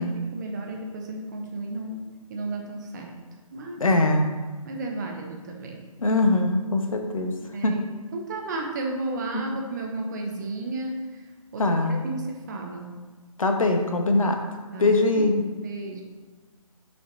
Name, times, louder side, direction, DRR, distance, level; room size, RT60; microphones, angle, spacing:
voice 1, 0.3-3.2 3.5-3.9 4.6-5.9 7.5-7.8 8.1-11.2 11.5-13.0 14.7-15.3 15.6-16.0, right 2 dB, 30° right, 2 dB, 0.8 m, -33 dB
voice 2, 3.8-4.3 6.0-7.3 7.6-7.7 9.3-9.4 11.6-12.0 13.4-14.4 14.8-15.4, left 2 dB, 65° left, 4 dB, 1.2 m, -22 dB
6.0 x 6.0 x 3.9 m, 1.4 s
figure-of-eight pair, 150°, 18 cm